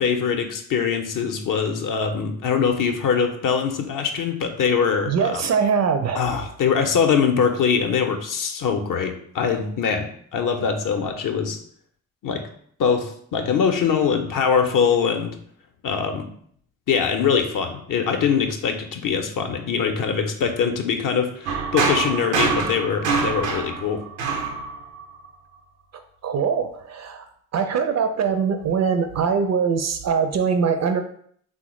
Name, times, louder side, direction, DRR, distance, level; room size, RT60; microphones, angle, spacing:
voice 1, 0.0-5.5 6.1-11.6 12.2-12.4 12.8-15.4 15.8-16.3 16.9-24.0, left 6 dB, 50° left, 5 dB, 0.6 m, -23 dB
voice 2, 5.1-6.2 25.9-27.3 27.5-31.0, right 6 dB, 45° right, 8 dB, 0.4 m, -22 dB
sound 1, 21.5-25.3, right 5 dB, 90° right, 0.5 m, -25 dB
3.4 x 2.0 x 3.0 m, 0.62 s
hypercardioid pair, 45°, 41 cm